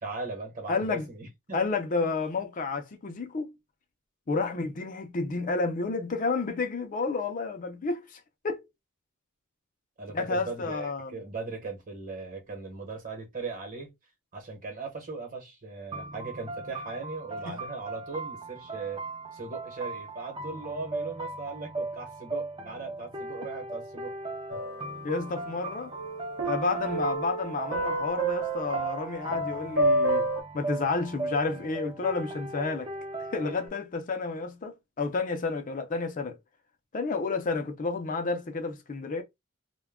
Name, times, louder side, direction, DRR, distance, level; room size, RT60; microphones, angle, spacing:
voice 1, 0.0-1.6 10.0-13.9 14.3-19.0 19.3-24.1 24.5-24.6, right 4 dB, 40° right, 1.0 m, -38 dB
voice 2, 0.7-1.1 1.5-3.5 4.3-8.6 10.1-11.1 17.4-17.6 25.0-25.9 26.4-30.3 30.5-32.9 33.3-36.4 36.9-39.2, left 3 dB, 40° left, 0.4 m, -30 dB
sound 1, 15.9-33.7, right 2 dB, 25° right, 0.5 m, -38 dB
sound 2, 24.5-25.6 25.9-30.4, right 1 dB, 65° right, 0.7 m, -29 dB
2.2 x 2.1 x 3.5 m
head